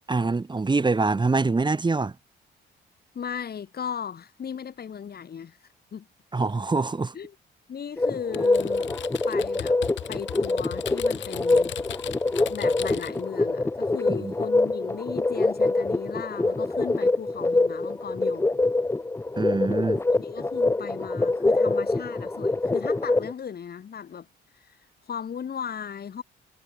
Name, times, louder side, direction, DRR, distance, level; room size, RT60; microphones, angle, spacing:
voice 1, 0.1-2.2 6.3-7.2 14.2-14.3 19.4-20.0, right 3 dB, 20° right, 1.9 m, -24 dB
voice 2, 3.1-5.6 5.9-6.1 7.1-7.3 7.7-9.0 9.3-9.8 10.1-11.8 12.5-18.5 20.2-24.3 24.6-24.8 25.0-26.2, left 7 dB, 50° left, 6.4 m, -36 dB
sound 1, 8.0-23.3, left 2 dB, 15° left, 0.8 m, -25 dB
Typing, 8.3-13.2, left 11 dB, 70° left, 2.0 m, -39 dB
cardioid pair, 90°, 20 cm